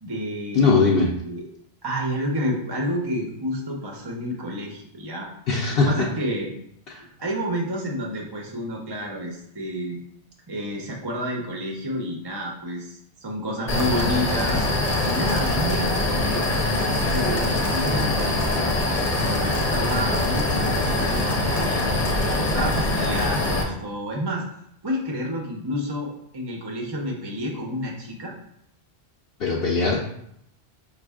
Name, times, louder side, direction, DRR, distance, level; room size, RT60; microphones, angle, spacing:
voice 1, 0.0-0.9 1.2-1.4 1.8-5.3 5.9-6.5 7.2-10.0 10.5-14.7 15.0-16.5 17.1-18.8 19.2-24.4 24.8-28.3, equal, 30° right, 0 dB, 0.5 m, -30 dB
voice 2, 0.5-1.1 5.5-6.1 29.4-30.0, left 4 dB, 65° left, -3 dB, 0.8 m, -20 dB
sound 1, 13.7-23.6, left 2 dB, 40° left, 0.8 m, -23 dB
5.2 x 2.4 x 3.4 m, 0.74 s
omnidirectional pair, 1.1 m